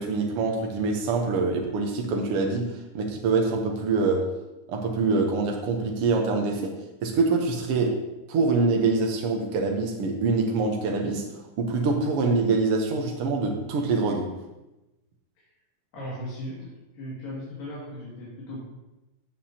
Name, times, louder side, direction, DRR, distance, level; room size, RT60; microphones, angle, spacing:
voice 1, 0.0-4.3 4.7-8.0 8.3-11.3 11.6-14.3, right 3 dB, 70° right, 1 dB, 1.4 m, -25 dB
voice 2, 15.9-18.6, left 1 dB, 85° left, -7 dB, 4.0 m, -37 dB
14.5 x 7.6 x 2.9 m, 1.0 s
omnidirectional pair, 3.8 m